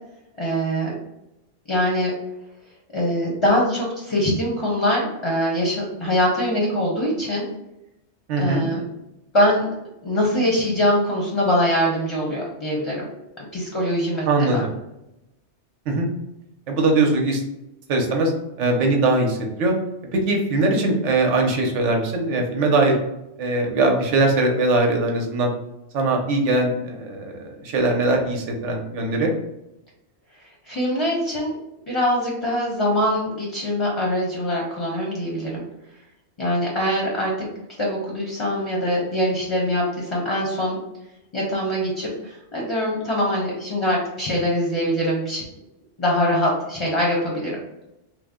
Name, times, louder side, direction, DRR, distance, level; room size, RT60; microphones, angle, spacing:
voice 1, 0.4-0.9 1.7-2.1 2.9-7.5 8.4-8.8 9.3-9.6 10.0-13.1 13.5-14.6 30.7-31.5 31.9-35.6 36.4-37.3 37.8-40.8 41.3-45.5 46.0-47.6, equal, 35° left, -3 dB, 0.5 m, -23 dB
voice 2, 8.3-8.7 14.3-14.7 15.9-16.1 16.7-17.4 17.9-18.3 18.6-19.7 20.1-23.0 23.4-25.5 25.9-29.3, right 2 dB, 85° right, 2 dB, 1.0 m, -21 dB
3.2 x 2.0 x 3.5 m, 0.90 s
omnidirectional pair, 1.2 m